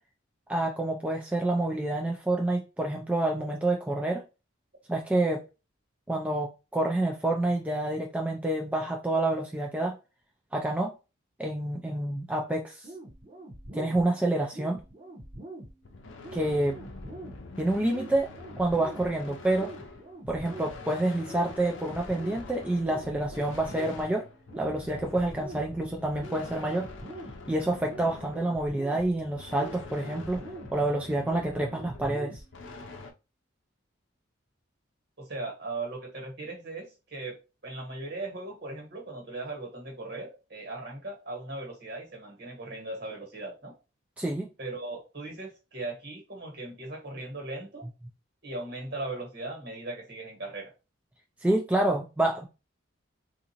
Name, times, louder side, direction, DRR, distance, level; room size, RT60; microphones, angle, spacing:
voice 1, 0.5-4.2 4.9-5.4 6.1-10.0 10.5-10.9 11.4-12.9 13.7-14.8 16.3-16.8 17.6-18.3 18.6-19.7 20.3-24.2 24.6-26.9 27.5-30.4 30.7-32.4 44.2-44.5 51.4-52.5, right 1 dB, 5° right, 0.3 m, -28 dB
sound 1, 12.8-32.8, right 2 dB, 35° right, 0.9 m, -46 dB
sound 2, 15.8-33.1, left 3 dB, 60° left, 0.6 m, -45 dB
voice 2, 35.2-43.7 44.6-47.8 48.4-50.7, right 2 dB, 50° right, 1.5 m, -38 dB
3.7 x 2.5 x 2.8 m
head